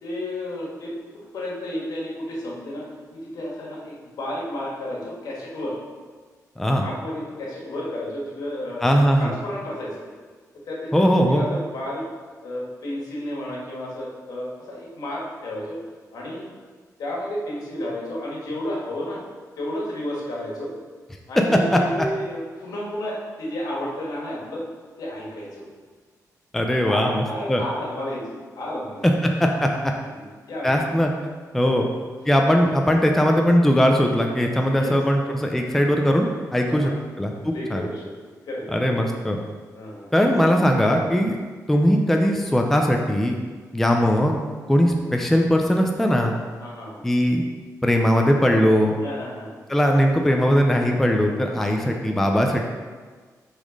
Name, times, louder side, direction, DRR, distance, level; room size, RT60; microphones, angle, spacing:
voice 1, 0.0-5.8 6.8-8.8 9.2-10.0 10.5-12.0 12.4-15.8 16.1-16.4 17.0-19.2 19.6-20.7 21.3-24.6 25.0-25.6 26.8-29.1 30.0-30.8 31.6-31.8 34.6-34.9 36.7-37.0 37.5-38.1 38.4-39.0 39.7-40.1 45.1-45.2 46.6-47.0 49.0-49.6 51.6-51.8, left 1 dB, 75° left, -4 dB, 1.8 m, -32 dB
voice 2, 8.8-9.3 10.9-11.4 21.4-21.8 26.5-27.6 29.2-29.9 30.6-31.1 31.5-31.8 32.3-36.9 37.2-37.8 38.7-39.4 40.1-41.4 41.7-43.4 43.7-44.3 44.7-46.3 47.0-47.4 47.8-49.0 49.7-52.6, equal, 5° left, 2 dB, 0.4 m, -20 dB
6.0 x 4.1 x 5.2 m, 1.5 s
wide cardioid pair, 175°, 7 cm